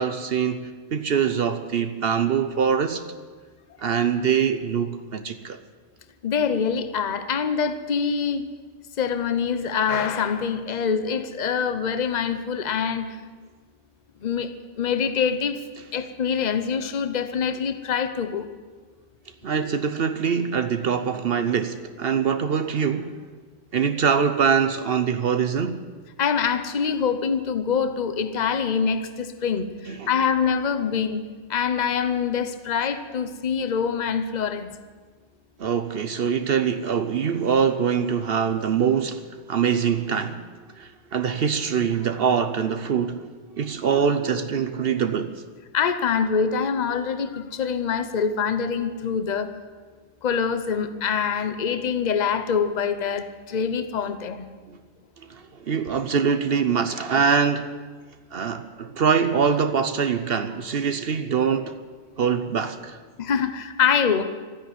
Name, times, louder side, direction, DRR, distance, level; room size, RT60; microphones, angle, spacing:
voice 1, 0.0-3.0 3.8-5.6 19.4-23.2 23.7-25.8 29.9-30.1 35.6-40.4 40.8-43.3 43.6-45.4 54.7-54.8 55.2-57.7 58.3-61.8 62.2-63.0, right 7 dB, 60° right, 0.9 m, -24 dB
voice 2, 6.2-8.5 9.0-13.1 14.2-14.5 14.8-15.6 15.9-18.5 26.2-31.2 31.5-34.7 45.7-49.5 50.2-54.5 63.2-64.2, left 6 dB, 40° left, 0.9 m, -25 dB
14.0 x 9.9 x 9.9 m
omnidirectional pair, 1.2 m